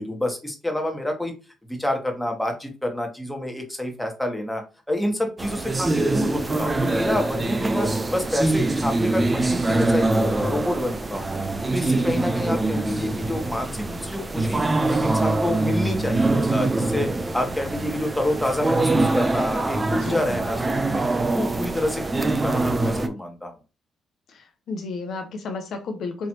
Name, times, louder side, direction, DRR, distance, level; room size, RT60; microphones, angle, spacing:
voice 1, 0.0-1.3 1.7-4.6 4.9-11.4 11.7-14.6 14.9-21.0 21.3-23.5, left 1 dB, 5° left, 2 dB, 1.5 m, -28 dB
sound 1, 5.4-23.1, right 2 dB, 20° right, 0.6 m, -24 dB
voice 2, 24.3-26.3, left 3 dB, 65° left, 5 dB, 0.9 m, -32 dB
4.5 x 3.1 x 2.9 m, 0.31 s
cardioid pair, 90°, 0 cm